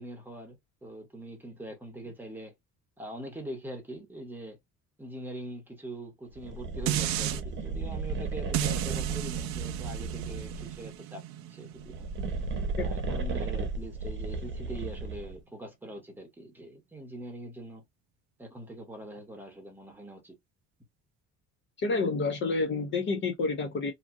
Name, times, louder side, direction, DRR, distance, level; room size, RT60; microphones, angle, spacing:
voice 1, 0.0-2.5 3.0-4.6 5.0-12.1 12.8-17.8 18.4-20.4, right 1 dB, 5° right, 0.8 m, -43 dB
sound 1, 6.4-10.8 11.7-15.4, right 4 dB, 35° right, 0.8 m, -35 dB
sound 2, 6.9-7.4 8.5-13.7 14.1-14.2, right 13 dB, 65° right, 0.5 m, -34 dB
voice 2, 12.8-13.2 21.8-23.9, left 3 dB, 40° left, 0.5 m, -29 dB
2.8 x 2.5 x 2.5 m
cardioid pair, 170°, 31 cm